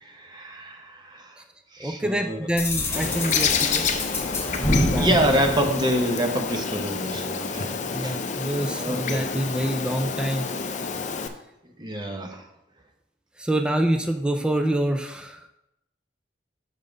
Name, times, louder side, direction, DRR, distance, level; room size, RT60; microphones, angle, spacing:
voice 1, 0.0-1.2 1.7-2.4 5.0-7.7 8.0-8.1 8.8-9.2 11.8-12.4, equal, 25° right, 4 dB, 0.9 m, -26 dB
voice 2, 1.8-4.0 4.6-5.1 7.9-10.5 13.4-15.5, right 1 dB, 5° right, 5 dB, 0.5 m, -26 dB
sound 1, 2.6-6.4, left 1 dB, 15° left, 1.0 m, -27 dB
Bird, 2.9-11.3, left 5 dB, 40° left, 0.6 m, -29 dB
6.6 x 5.6 x 5.1 m, 0.85 s
head